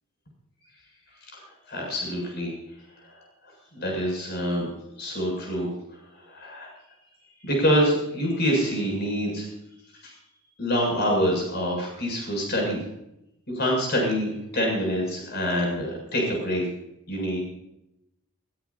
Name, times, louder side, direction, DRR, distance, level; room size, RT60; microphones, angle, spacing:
voice 1, 1.7-2.5 3.0-3.2 3.7-4.7 5.0-6.7 7.4-9.5 10.0-10.1 10.6-12.8 13.5-16.7 17.1-17.4, equal, 50° left, -1 dB, 7.4 m, -26 dB
22.0 x 15.5 x 2.9 m, 0.83 s
head